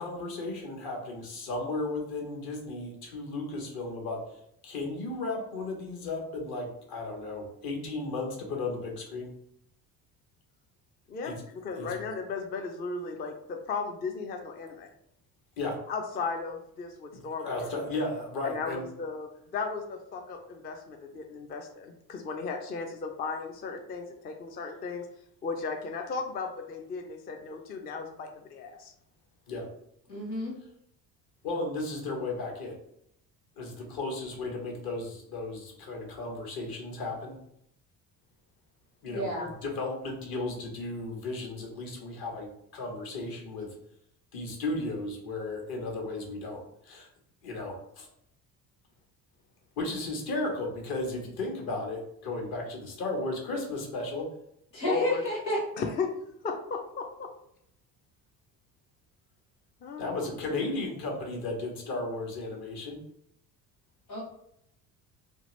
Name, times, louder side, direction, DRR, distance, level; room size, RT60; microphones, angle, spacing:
voice 1, 0.0-4.2 4.6-9.3 11.2-11.4 11.8-11.9 15.6-15.8 17.1-18.8 29.5-29.7 31.4-32.8 33.6-37.4 39.0-39.3 39.6-43.7 44.3-47.1 47.4-48.1 49.8-54.3 60.0-63.0, left 2 dB, 45° left, 1 dB, 1.1 m, -35 dB
voice 2, 11.1-14.9 15.9-17.7 18.4-25.1 25.4-28.9 39.4-39.5 54.8-55.2 55.8-56.1 56.4-57.3 59.8-60.3, left 4 dB, 20° left, 3 dB, 0.3 m, -36 dB
voice 3, 30.1-30.6 39.1-39.5 54.7-55.6 64.1-64.2, equal, 90° left, -5 dB, 1.0 m, -30 dB
2.8 x 2.5 x 3.0 m, 0.74 s
figure-of-eight pair, 55°, 49 cm